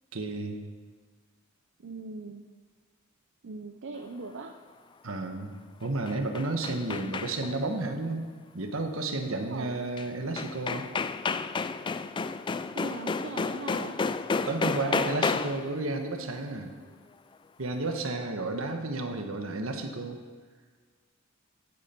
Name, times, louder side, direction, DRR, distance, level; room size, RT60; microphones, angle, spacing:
voice 1, 0.1-0.7 5.0-8.3 8.5-10.9 14.5-16.7 17.6-20.2, right 2 dB, 80° right, 5 dB, 1.3 m, -32 dB
voice 2, 1.8-2.5 3.4-4.6 9.3-9.8 12.7-14.0, right 3 dB, 60° right, 5 dB, 0.6 m, -40 dB
sound 1, 5.8-7.6 10.0-10.1 10.4-15.7, left 4 dB, 25° left, 0.3 m, -31 dB
15.0 x 8.8 x 4.4 m, 1.5 s
head